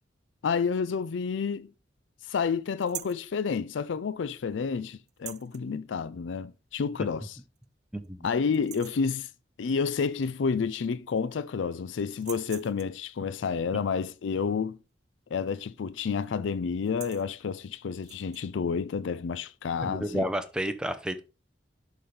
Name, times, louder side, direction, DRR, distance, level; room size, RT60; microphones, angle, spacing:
voice 1, 0.4-1.7 2.3-7.3 8.2-9.3 9.6-14.8 15.3-20.2, left 5 dB, 80° left, 0.4 m, -30 dB
sound 1, 2.8-3.3 5.1-5.6 7.0-7.1 7.6-7.7 8.0-8.3 8.5-9.1 10.5-10.6 10.8-11.5 12.1-13.0 15.4-15.7 16.0-16.3 16.7-17.3 18.0-18.4, right 13 dB, 40° right, 0.3 m, -44 dB
voice 2, 7.9-8.3 19.8-21.2, equal, 5° right, 0.7 m, -31 dB
11.0 x 4.0 x 3.3 m
head